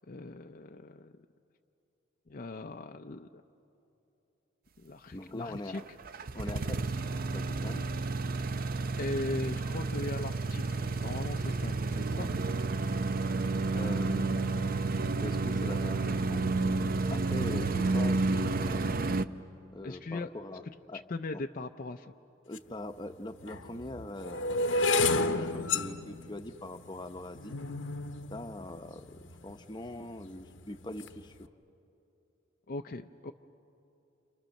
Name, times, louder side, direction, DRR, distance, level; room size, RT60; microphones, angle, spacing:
voice 1, 0.1-1.1 2.3-3.4 4.8-5.8 7.7-7.8 9.0-12.3 19.8-20.3 21.1-22.1 32.7-33.3, left 2 dB, 45° left, 5 dB, 0.6 m, -39 dB
voice 2, 5.1-5.9 6.3-7.8 13.7-14.8 15.2-16.5 17.1-18.9 19.7-21.0 21.3-21.4 22.5-27.6 28.3-31.5, left 1 dB, 25° left, 7 dB, 0.9 m, -42 dB
sound 1, 5.7-19.2, right 3 dB, 50° right, 0.6 m, -31 dB
sound 2, 22.6-22.7 23.4-29.6 30.2-30.6 30.8-31.2, left 3 dB, 70° left, 0.9 m, -31 dB
30.0 x 27.5 x 6.5 m, 2.9 s
head